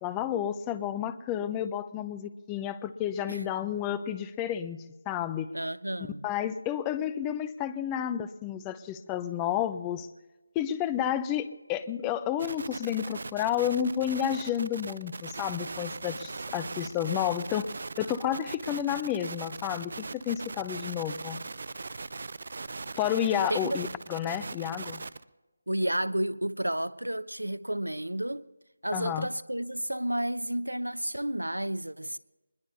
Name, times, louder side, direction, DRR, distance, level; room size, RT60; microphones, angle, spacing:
voice 1, 0.0-4.8 5.1-5.5 6.2-10.1 10.6-17.7 18.0-21.4 23.0-25.0 28.9-29.3, left 10 dB, 10° left, 0.5 m, -31 dB
voice 2, 5.5-6.2 23.5-23.8 25.7-28.5 28.8-32.2, right 1 dB, 85° right, 0.8 m, -31 dB
Intermittent radio interference, 12.4-25.2, right 3 dB, 50° right, 0.7 m, -40 dB
24.5 x 21.0 x 2.8 m
figure-of-eight pair, 160°, 0 cm